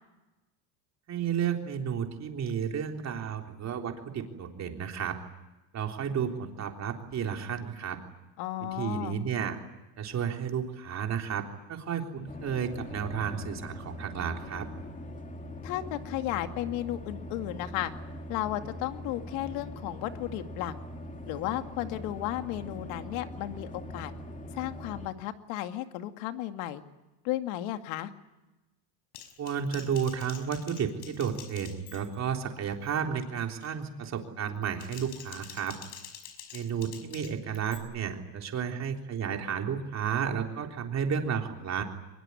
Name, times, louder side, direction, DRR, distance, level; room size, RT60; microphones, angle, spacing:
voice 1, 1.1-5.2 5.7-8.0 8.8-9.6 10.0-14.7 29.4-35.8 36.5-41.8, right 7 dB, 35° right, 3 dB, 3.6 m, -32 dB
voice 2, 8.4-9.2 15.6-17.9 18.3-20.7 21.3-24.1 24.5-26.8 27.2-28.1, left 14 dB, 65° left, 7 dB, 2.3 m, -34 dB
sound 1, 12.3-25.1, left 1 dB, 15° left, 2.7 m, -42 dB
Typing, 29.1-32.3 32.6-33.0 33.4-33.8 34.6-37.8, left 10 dB, 85° left, 5.6 m, -47 dB
23.5 x 22.0 x 9.7 m, 1.0 s
cardioid pair, 140°, 48 cm